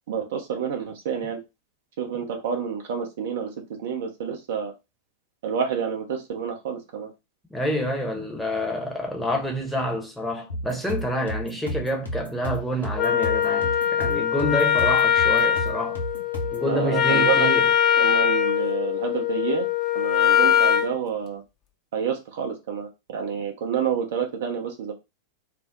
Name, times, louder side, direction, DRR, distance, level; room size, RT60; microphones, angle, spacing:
voice 1, 0.1-1.4 2.0-3.5 3.8-4.7 5.4-7.1 16.7-17.5 18.0-19.7 19.9-21.4 21.9-24.9, right 7 dB, 55° right, 0.7 m, -28 dB
voice 2, 7.5-16.0 16.5-17.7, equal, 5° left, 0.8 m, -28 dB
sound 1, 10.5-16.7, equal, 80° left, 0.9 m, -33 dB
Wind instrument woodwind instrument, 13.0-20.9, left 9 dB, 30° left, 0.5 m, -22 dB
2.5 x 2.0 x 3.7 m
figure-of-eight pair, 90°, 0 cm